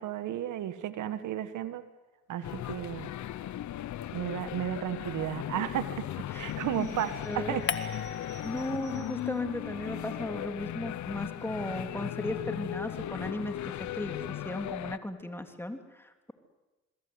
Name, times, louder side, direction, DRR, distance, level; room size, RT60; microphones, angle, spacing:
voice 1, 0.0-1.8 2.3-3.1 4.1-8.0, right 11 dB, 80° right, 12 dB, 1.6 m, -34 dB
sound 1, 2.4-15.0, left 12 dB, 70° left, 1.0 m, -37 dB
sound 2, 6.2-9.4 10.0-10.1 10.3-10.7 11.3-11.7 12.1-12.2 12.4-12.5, right 8 dB, 55° right, 6.9 m, -57 dB
sound 3, 7.7-9.4 9.7-12.1, left 6 dB, 40° left, 1.8 m, -41 dB
voice 2, 8.4-16.3, left 1 dB, 10° left, 6 dB, 3.1 m, -36 dB
27.5 x 21.5 x 9.7 m, 1.1 s
cardioid pair, 90°, 30 cm